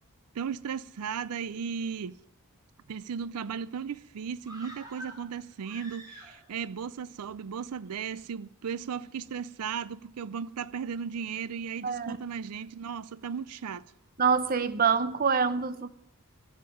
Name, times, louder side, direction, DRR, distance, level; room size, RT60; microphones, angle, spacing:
voice 1, 0.3-2.2 2.9-13.8, right 7 dB, 90° right, 0.4 m, -36 dB
sound 1, 4.4-6.7 7.0-7.1, right 1 dB, 15° right, 3.6 m, -47 dB
voice 2, 11.8-12.2 14.2-15.9, right 6 dB, 40° right, 0.6 m, -26 dB
15.5 x 7.4 x 9.9 m
head